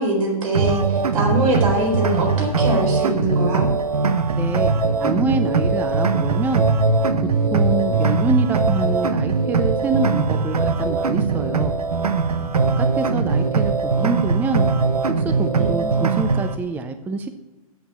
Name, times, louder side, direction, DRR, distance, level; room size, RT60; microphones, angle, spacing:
voice 1, 0.0-3.7 15.6-16.0, right 1 dB, 65° right, 1 dB, 4.1 m, -23 dB
sound 1, 0.5-16.5, right 4 dB, 90° right, 0.8 m, -20 dB
voice 2, 4.4-4.7 5.0-6.6 7.5-11.8 12.8-14.7 15.2-17.3, right 4 dB, 10° right, 9 dB, 0.4 m, -26 dB
8.1 x 7.0 x 7.1 m, 1.1 s
hypercardioid pair, 125°, 19 cm